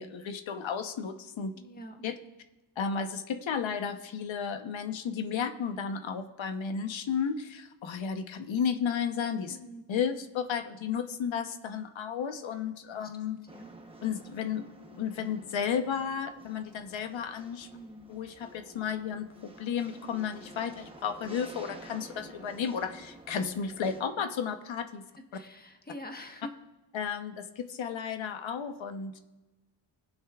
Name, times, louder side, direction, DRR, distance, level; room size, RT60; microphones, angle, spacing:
voice 1, 0.0-1.6 2.0-2.1 2.8-9.6 9.9-13.4 14.0-17.7 18.1-25.0 26.9-29.2, left 7 dB, 80° left, 7 dB, 1.0 m, -33 dB
voice 2, 1.6-2.0 9.5-9.8 13.0-13.7 17.7-18.1 25.2-26.5, left 1 dB, 20° left, 4 dB, 1.2 m, -45 dB
sound 1, 13.5-24.0, right 2 dB, 10° right, 1.0 m, -51 dB
19.5 x 9.9 x 2.4 m, 1.1 s
wide cardioid pair, 135°, 45 cm